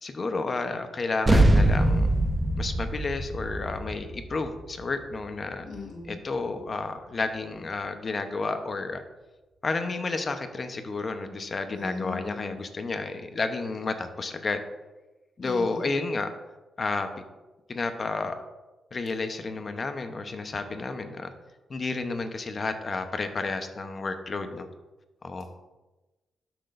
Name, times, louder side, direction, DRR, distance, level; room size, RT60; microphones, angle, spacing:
voice 1, 0.0-2.1 2.6-5.6 6.1-9.0 9.6-14.6 15.4-16.3 16.8-17.1 17.7-18.4 18.9-21.3 21.7-24.7 25.2-25.5, left 3 dB, 40° left, 7 dB, 0.9 m, -31 dB
sound 1, 1.3-6.0, right 1 dB, 20° right, 0.9 m, -24 dB
voice 2, 5.6-6.2 11.7-12.6 15.4-16.0, left 4 dB, 80° left, -1 dB, 1.4 m, -38 dB
12.0 x 6.0 x 2.6 m, 1.1 s
cardioid pair, 85°, 0 cm